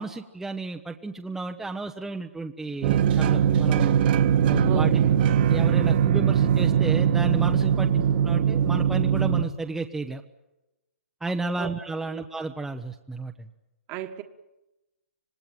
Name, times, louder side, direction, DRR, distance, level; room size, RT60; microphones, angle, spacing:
voice 1, 0.0-3.9 4.5-5.0 5.5-10.2 11.2-13.5, right 3 dB, 5° right, 3 dB, 1.0 m, -32 dB
sound 1, 2.8-9.4, right 9 dB, 45° right, 1.6 m, -21 dB
voice 2, 4.6-5.2 7.9-8.2 11.6-11.7 12.1-12.3 13.9-14.2, right 11 dB, 25° right, 7 dB, 1.6 m, -35 dB
26.5 x 19.5 x 9.2 m, 0.97 s
hypercardioid pair, 155°, 7 cm